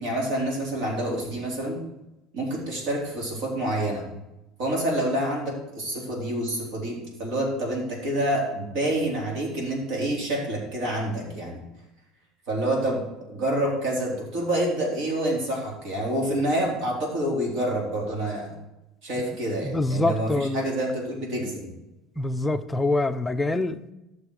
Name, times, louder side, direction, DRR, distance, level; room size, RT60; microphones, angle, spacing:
voice 1, 0.0-1.8 2.3-4.0 4.6-11.6 12.5-18.5 19.0-21.7, right 1 dB, 65° right, -2 dB, 3.9 m, -27 dB
voice 2, 19.6-20.6 22.2-23.9, left 2 dB, 10° left, 9 dB, 0.5 m, -25 dB
12.0 x 6.8 x 4.9 m, 0.98 s
cardioid pair, 155°, 0 cm